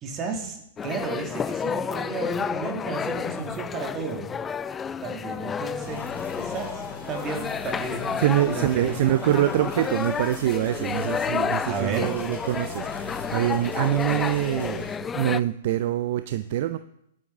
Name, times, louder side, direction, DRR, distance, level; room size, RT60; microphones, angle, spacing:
voice 1, 0.0-4.3 5.0-6.8 7.1-9.2 11.7-12.2, right 4 dB, 25° right, 4 dB, 2.0 m, -33 dB
sound 1, 0.8-15.4, left 6 dB, 15° left, 0.3 m, -31 dB
sound 2, 5.8-15.0, left 2 dB, 85° left, 5.2 m, -41 dB
voice 2, 8.2-16.8, right 13 dB, 50° right, 12 dB, 0.4 m, -25 dB
12.5 x 10.0 x 3.5 m, 0.78 s
figure-of-eight pair, 105°, 0 cm